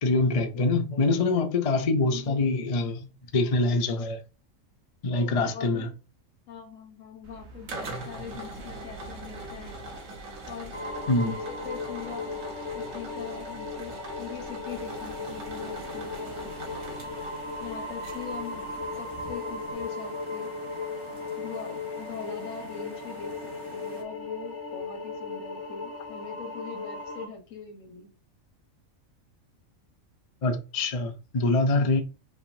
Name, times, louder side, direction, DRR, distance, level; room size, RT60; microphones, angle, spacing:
voice 1, 0.0-4.2 5.0-5.9 7.9-8.0 11.1-11.3 30.4-32.0, left 2 dB, 45° left, 0.5 m, -25 dB
voice 2, 5.3-5.9 6.5-9.8 10.5-10.7 11.2-12.4 12.7-16.7 17.6-20.5 21.4-28.1, left 7 dB, 85° left, 1.5 m, -42 dB
sound 1, 7.2-19.7, right 2 dB, 75° right, 1.3 m, -42 dB
sound 2, 10.7-27.3, left 3 dB, 60° left, 1.6 m, -37 dB
sound 3, 14.6-24.0, right 3 dB, 45° right, 1.2 m, -48 dB
5.1 x 3.5 x 2.7 m
omnidirectional pair, 1.3 m